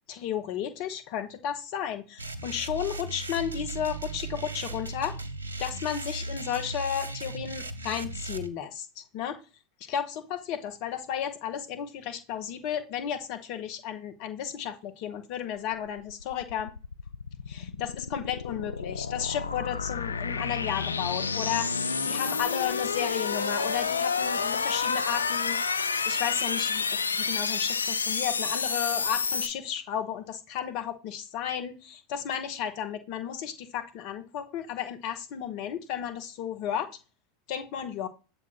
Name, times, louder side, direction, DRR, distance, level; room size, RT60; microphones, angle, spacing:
voice 1, 0.1-5.2 5.6-9.4 9.9-16.7 17.5-25.6 26.0-37.0 37.5-38.1, left 9 dB, 50° left, 0.9 m, -33 dB
sound 1, 2.2-8.5, right 2 dB, 85° right, 0.5 m, -37 dB
sound 2, 15.8-29.5, left 5 dB, 85° left, 0.3 m, -30 dB
7.3 x 2.7 x 5.8 m
figure-of-eight pair, 85°, 0 cm